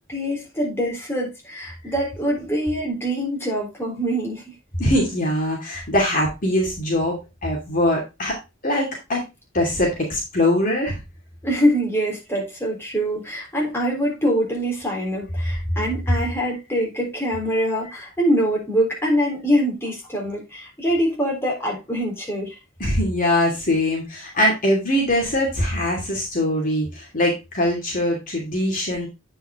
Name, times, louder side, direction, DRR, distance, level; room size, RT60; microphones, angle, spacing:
voice 1, 0.1-4.4 11.4-22.5, equal, 10° left, -3 dB, 3.7 m, -24 dB
voice 2, 4.8-8.4 8.6-9.2 9.5-11.0 22.8-29.1, left 1 dB, 45° left, -1 dB, 2.6 m, -22 dB
8.9 x 5.7 x 3.6 m, 0.25 s
head